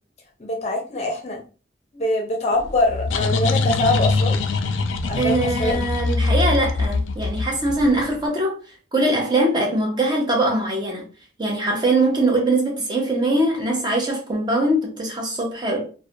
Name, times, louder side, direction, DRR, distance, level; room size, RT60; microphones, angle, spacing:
voice 1, 0.4-1.4 1.9-4.4 5.0-5.8, left 1 dB, 35° left, 0.6 m, -23 dB
sound 1, 2.6-8.1, left 3 dB, 90° left, 0.3 m, -23 dB
voice 2, 5.2-8.6 8.9-11.0 11.4-15.9, right 1 dB, 25° right, 0.6 m, -22 dB
2.3 x 2.1 x 2.7 m
head